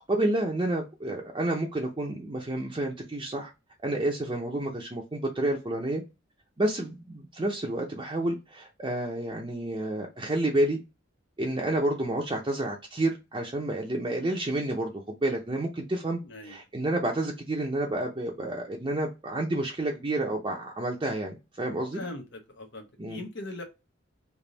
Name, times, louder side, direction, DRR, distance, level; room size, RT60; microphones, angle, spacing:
voice 1, 0.1-3.5 3.8-6.0 6.6-10.8 11.4-22.0 23.0-23.2, right 1 dB, 25° right, 0.6 m, -30 dB
voice 2, 16.2-16.6 21.9-23.6, left 2 dB, 60° left, 0.8 m, -40 dB
3.4 x 2.5 x 3.9 m
head